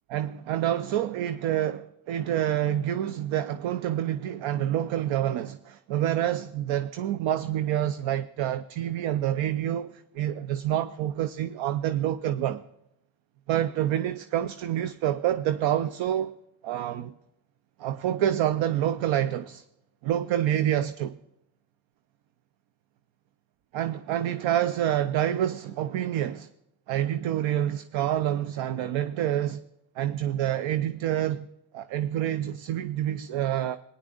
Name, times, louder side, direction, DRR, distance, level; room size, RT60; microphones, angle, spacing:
voice 1, 0.1-12.6 13.5-16.4 16.6-17.1 17.8-19.6 20.0-21.2 23.7-26.5 26.9-29.6 30.0-31.5 31.7-33.8, right 11 dB, 65° right, 0.7 m, -27 dB
19.0 x 10.0 x 2.5 m
cardioid pair, 100°, 49 cm